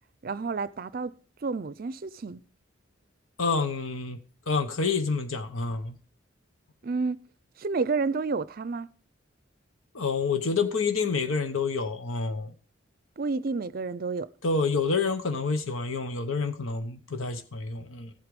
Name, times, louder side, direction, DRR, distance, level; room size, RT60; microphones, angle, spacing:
voice 1, 0.2-1.1 1.4-2.4 6.8-7.2 7.6-8.9 13.2-14.3, right 4 dB, 45° right, 0.5 m, -30 dB
voice 2, 3.4-4.2 4.5-6.0 9.9-12.5 14.4-18.1, left 4 dB, 85° left, 1.0 m, -28 dB
14.0 x 8.1 x 5.2 m
head